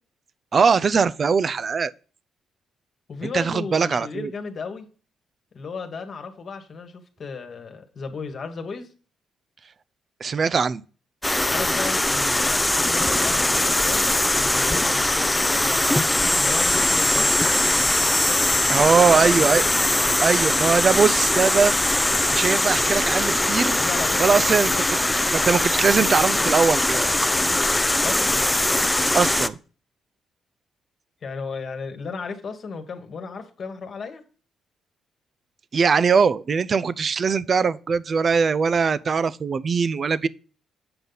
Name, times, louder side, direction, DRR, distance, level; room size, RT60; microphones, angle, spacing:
voice 1, 0.5-1.9 3.2-4.3 10.2-10.8 18.7-19.6 20.2-21.7 22.3-23.8 24.2-25.0 25.3-27.3 29.1-29.6 35.7-40.3, right 5 dB, 45° right, 0.4 m, -21 dB
voice 2, 3.1-4.9 5.5-8.9 11.4-16.0 16.3-19.6 23.7-24.6 24.9-25.1 28.0-28.4 31.2-34.2, left 4 dB, 50° left, 1.4 m, -35 dB
sound 1, 11.2-29.5, left 1 dB, 10° left, 0.4 m, -21 dB
7.7 x 5.4 x 4.0 m
cardioid pair, 90°, 0 cm